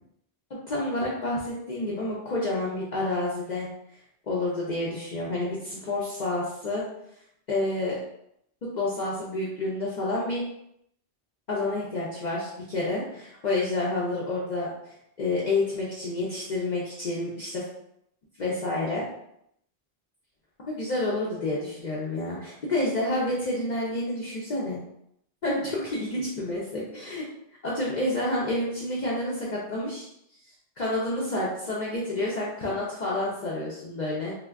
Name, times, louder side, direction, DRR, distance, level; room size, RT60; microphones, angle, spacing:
voice 1, 0.5-3.7 4.3-6.8 7.5-8.0 8.7-10.4 11.5-14.7 15.2-17.6 18.4-19.1 20.7-24.8 25.4-27.2 27.6-30.1 30.8-34.4, left 2 dB, 55° left, -6 dB, 0.6 m, -29 dB
2.3 x 2.2 x 3.3 m, 0.76 s
omnidirectional pair, 1.1 m